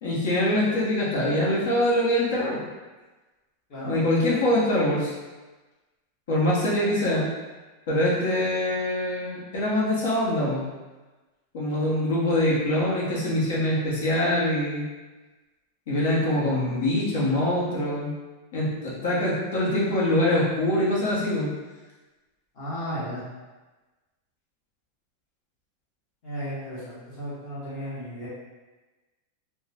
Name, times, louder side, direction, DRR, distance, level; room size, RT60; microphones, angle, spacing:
voice 1, 0.0-2.6 3.8-5.1 6.3-7.3 7.9-10.6 11.5-14.8 15.9-18.1 18.5-21.5, left 1 dB, 70° left, -6 dB, 1.0 m, -24 dB
voice 2, 22.5-23.2 26.2-28.3, equal, 40° left, -9 dB, 1.0 m, -34 dB
3.6 x 2.2 x 2.8 m, 1.2 s
supercardioid pair, 170°, 0 cm